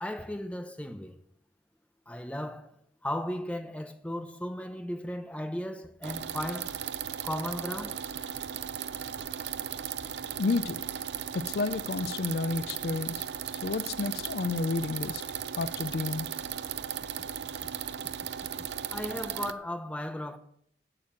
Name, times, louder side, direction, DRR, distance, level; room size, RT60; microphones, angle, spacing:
voice 1, 0.0-1.2 2.1-2.7 3.0-6.8 7.2-8.0 18.9-20.4, left 1 dB, 5° left, 0.9 m, -36 dB
sound 1, 6.0-19.5, right 9 dB, 80° right, 0.6 m, -36 dB
voice 2, 10.3-10.8 11.3-13.2 13.6-15.2 15.5-16.3, left 3 dB, 65° left, 0.4 m, -31 dB
8.9 x 7.5 x 7.5 m
head